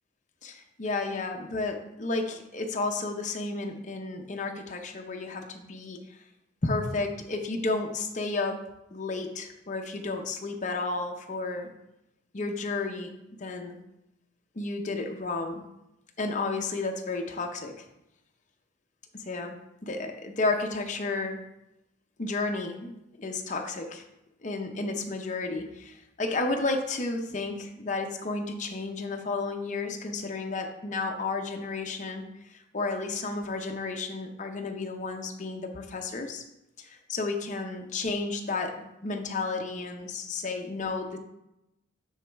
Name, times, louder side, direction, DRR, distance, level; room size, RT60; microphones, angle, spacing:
voice 1, 0.4-6.0 6.6-8.6 8.9-11.7 12.3-13.8 14.6-15.6 16.2-17.8 19.1-19.6 19.8-21.4 22.2-24.0 24.4-32.2 32.5-36.4 36.8-41.2, left 3 dB, 40° left, 3 dB, 0.6 m, -32 dB
9.3 x 3.9 x 3.4 m, 0.88 s
head